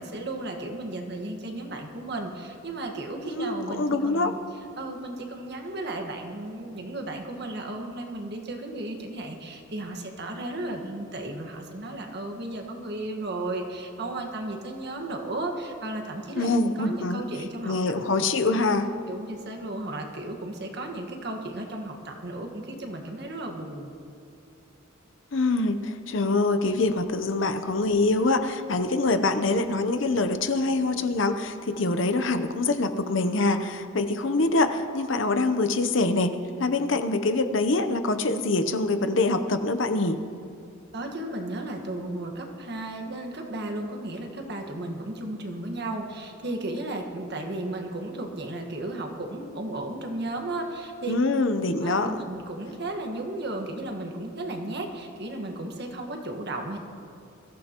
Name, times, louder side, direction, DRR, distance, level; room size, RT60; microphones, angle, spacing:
voice 1, 0.0-4.4 4.8-16.5 16.8-17.7 18.2-18.3 19.1-23.9 40.9-51.1 51.8-56.8, right 2 dB, 55° right, 3 dB, 1.6 m, -34 dB
voice 2, 3.4-4.3 16.4-17.2 17.6-19.0 25.3-40.2 51.1-52.2, left 2 dB, 65° left, 9 dB, 0.8 m, -25 dB
22.0 x 15.0 x 3.0 m, 2.8 s
head